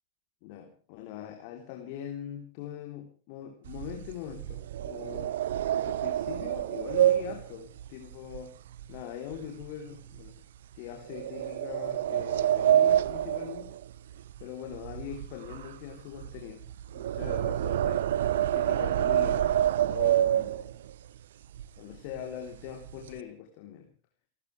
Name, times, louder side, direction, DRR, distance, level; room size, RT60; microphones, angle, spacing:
voice 1, 0.4-5.4 5.8-8.5 8.9-10.3 10.7-13.7 14.4-16.7 16.9-19.6 19.8-20.7 21.8-23.9, left 9 dB, 45° left, 4 dB, 3.3 m, -42 dB
sound 1, 3.7-9.0 9.3-9.7 10.2-10.3 11.1-14.4 14.7-20.9 21.5-21.6 21.9-22.2 22.5-23.2, right 11 dB, 60° right, 0.7 m, -27 dB
28.5 x 14.5 x 3.3 m, 0.36 s
figure-of-eight pair, 90°, 0 cm